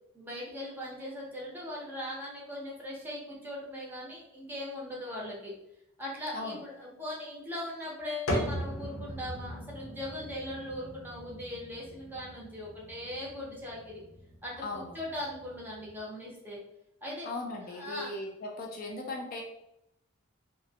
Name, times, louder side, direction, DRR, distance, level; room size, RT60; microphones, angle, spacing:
voice 1, 0.1-5.5 6.0-14.0 14.4-14.5 14.9-16.6 17.0-17.3 17.7-18.1, left 1 dB, 10° right, -4 dB, 0.5 m, -39 dB
sound 1, 8.3-16.0, equal, 80° left, 0.7 m, -39 dB
voice 2, 14.6-15.0 17.2-19.4, left 2 dB, 40° left, 1 dB, 0.3 m, -38 dB
2.4 x 2.1 x 2.7 m, 0.81 s
head